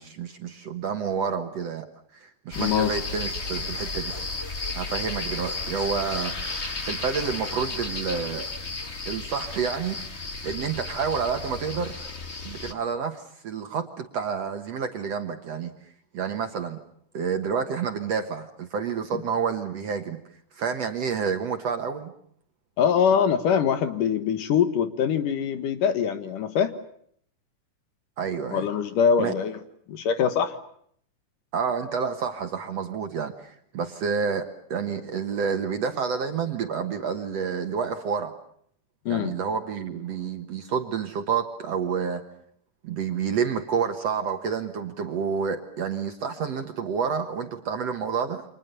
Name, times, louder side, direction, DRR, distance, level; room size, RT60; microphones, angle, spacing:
voice 1, 0.0-1.9 2.1-4.1 4.7-6.3 6.8-8.5 9.1-10.0 10.4-12.0 12.4-15.7 16.1-16.8 17.1-20.2 20.5-22.1 28.2-28.7 29.2-29.3 31.5-38.3 39.1-42.2 42.8-48.4, right 6 dB, 55° right, 6 dB, 2.0 m, -29 dB
sound 1, 2.5-12.7, left 3 dB, 30° left, 1.2 m, -33 dB
voice 2, 2.6-2.9 19.1-19.2 22.8-26.7 28.5-29.6 29.9-30.6 39.1-39.3, left 7 dB, 65° left, 10 dB, 2.9 m, -23 dB
29.5 x 25.5 x 6.8 m, 0.66 s
omnidirectional pair, 4.2 m